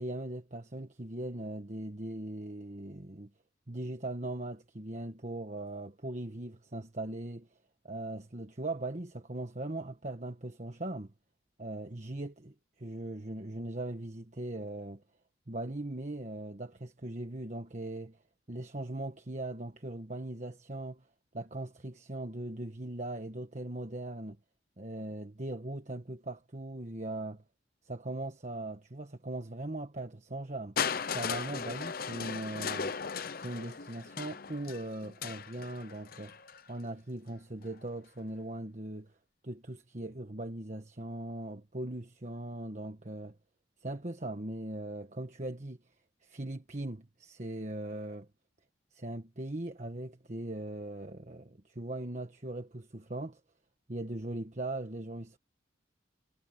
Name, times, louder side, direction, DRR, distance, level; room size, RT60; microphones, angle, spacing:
voice 1, 0.0-3.3 3.7-7.5 7.8-11.1 11.6-15.0 15.5-18.2 18.5-21.1 21.3-24.4 24.8-27.4 27.8-30.8 31.1-32.9 33.3-36.4 36.7-39.1 39.4-43.3 43.8-45.8 46.2-48.3 48.9-53.4 53.9-55.4, right 2 dB, 40° right, 1.3 m, -39 dB
Crushing, 30.8-36.7 37.6-37.7, left 6 dB, 50° left, 0.8 m, -37 dB
head